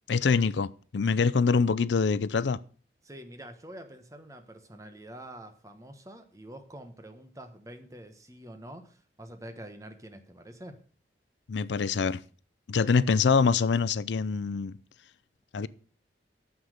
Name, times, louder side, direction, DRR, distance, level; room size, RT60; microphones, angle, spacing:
voice 1, 0.1-2.6 11.5-12.2 12.7-14.8 15.5-15.7, left 5 dB, 80° left, 0.5 m, -25 dB
voice 2, 3.0-10.8, right 1 dB, 20° right, 1.2 m, -46 dB
9.7 x 7.2 x 6.5 m
head